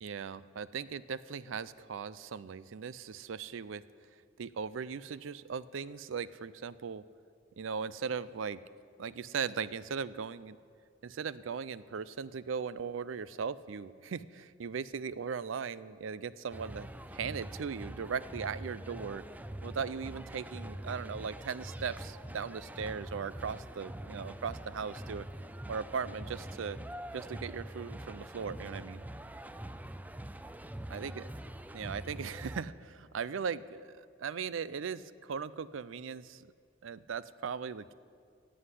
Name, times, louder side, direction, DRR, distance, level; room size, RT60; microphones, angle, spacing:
voice 1, 0.0-3.8 4.4-7.0 7.6-8.6 9.0-10.6 11.0-19.2 19.6-25.3 25.7-26.8 27.1-29.0 30.9-31.2 31.7-36.5 36.8-37.9, right 6 dB, 75° right, 17 dB, 0.5 m, -38 dB
sound 1, 16.5-32.6, right 1 dB, 10° right, 0.4 m, -44 dB
15.0 x 7.9 x 8.3 m, 2.2 s
head